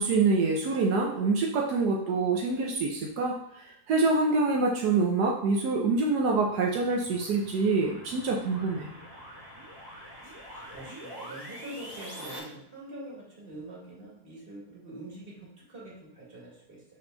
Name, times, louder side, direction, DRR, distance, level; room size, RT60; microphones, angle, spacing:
voice 1, 0.0-8.9, right 3 dB, 80° right, 0 dB, 1.4 m, -26 dB
sound 1, 5.9-12.4, equal, 15° right, 1.2 m, -46 dB
voice 2, 10.2-16.8, right 1 dB, 35° right, -4 dB, 2.2 m, -45 dB
6.3 x 5.3 x 3.9 m, 0.76 s
omnidirectional pair, 1.7 m